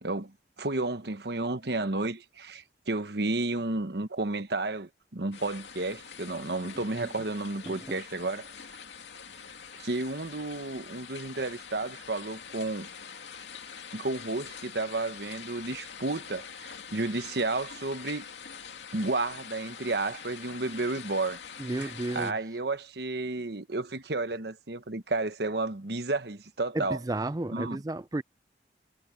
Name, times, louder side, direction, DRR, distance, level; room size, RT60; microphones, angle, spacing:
voice 1, 0.0-8.5 9.7-12.9 13.9-18.3 18.9-21.4 21.8-27.0 27.5-27.8, right 2 dB, 70° right, 1.2 m, -32 dB
sound 1, 5.3-22.3, left 7 dB, 85° left, 2.6 m, -45 dB
voice 2, 21.6-22.3 26.7-28.2, right 2 dB, 20° right, 0.4 m, -32 dB
head